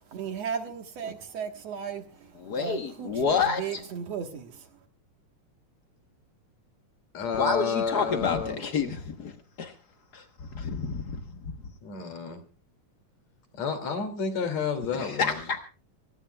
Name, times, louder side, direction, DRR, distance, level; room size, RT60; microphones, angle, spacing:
voice 1, 0.1-2.0 2.5-4.5, right 7 dB, 60° right, 2.4 m, -35 dB
voice 2, 2.3-3.8 7.3-9.3 9.6-9.7 10.1-10.2 10.5-11.2 15.0-15.6, left 5 dB, 85° left, 0.8 m, -28 dB
voice 3, 7.1-8.6 11.8-12.4 13.6-15.4, left 5 dB, 55° left, 3.7 m, -30 dB
24.0 x 19.0 x 2.3 m
omnidirectional pair, 3.6 m